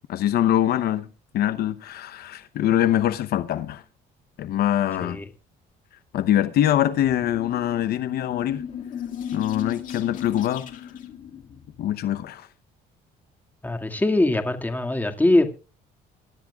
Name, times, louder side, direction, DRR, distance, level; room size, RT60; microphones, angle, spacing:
voice 1, 0.1-1.1 1.3-3.8 4.4-5.2 6.1-8.6 9.3-10.9 11.8-12.5, left 12 dB, 65° left, 0.8 m, -23 dB
sound 1, 6.8-12.1, left 8 dB, 50° left, 2.1 m, -36 dB
voice 2, 13.6-15.5, left 2 dB, 10° left, 2.0 m, -22 dB
23.5 x 12.0 x 2.4 m
cardioid pair, 110°, 17 cm